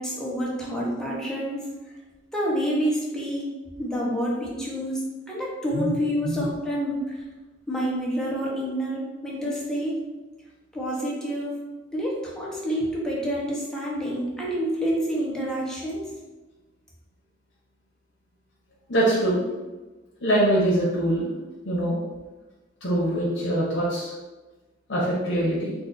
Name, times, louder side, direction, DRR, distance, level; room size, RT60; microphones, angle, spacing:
voice 1, 0.0-1.6 2.3-3.5 3.8-7.0 7.7-10.0 10.7-11.5 11.9-16.0, equal, 5° left, -5 dB, 0.9 m, -28 dB
voice 2, 18.9-19.4 20.2-21.3 21.6-22.0 22.8-24.1 24.9-25.7, right 1 dB, 75° left, -6 dB, 1.0 m, -23 dB
4.1 x 2.6 x 4.0 m, 1.2 s
head